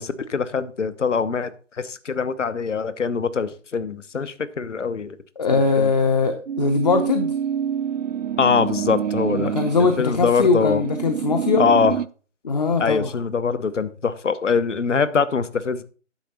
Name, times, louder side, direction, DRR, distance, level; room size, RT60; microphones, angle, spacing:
voice 1, 0.0-1.5 1.8-5.2 5.5-5.9 8.4-9.5 10.0-10.8 11.6-11.9 12.8-15.8, left 5 dB, 70° left, 14 dB, 1.0 m, -23 dB
voice 2, 5.4-7.3 9.3-11.6 12.4-13.1, left 4 dB, 35° left, 8 dB, 0.7 m, -21 dB
sound 1, 6.5-12.1, right 8 dB, 70° right, 0.6 m, -27 dB
10.0 x 6.9 x 4.1 m, 0.38 s
figure-of-eight pair, 150°, 38 cm